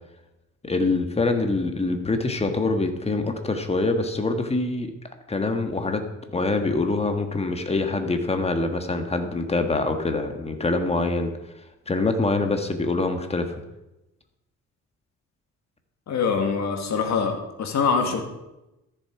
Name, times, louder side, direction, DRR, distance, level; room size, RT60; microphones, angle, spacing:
voice 1, 0.6-4.9 5.3-6.0 6.3-11.3 11.9-13.4, left 3 dB, 20° left, 6 dB, 1.6 m, -24 dB
voice 2, 16.1-18.2, left 5 dB, 65° left, 4 dB, 2.1 m, -24 dB
13.5 x 7.3 x 4.8 m, 0.96 s
cardioid pair, 90°, 30 cm